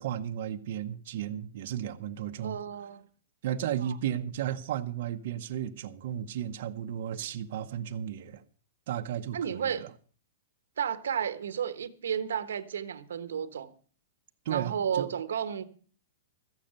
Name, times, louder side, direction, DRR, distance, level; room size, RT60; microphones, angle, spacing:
voice 1, 0.0-2.6 3.4-8.4 8.9-9.9 14.4-15.1, right 10 dB, 50° right, 1.0 m, -34 dB
voice 2, 2.4-3.1 3.8-3.9 9.3-9.9 10.8-13.7 14.5-15.6, right 8 dB, 90° right, 1.3 m, -32 dB
14.0 x 6.6 x 8.9 m
hypercardioid pair, 165°, 0 cm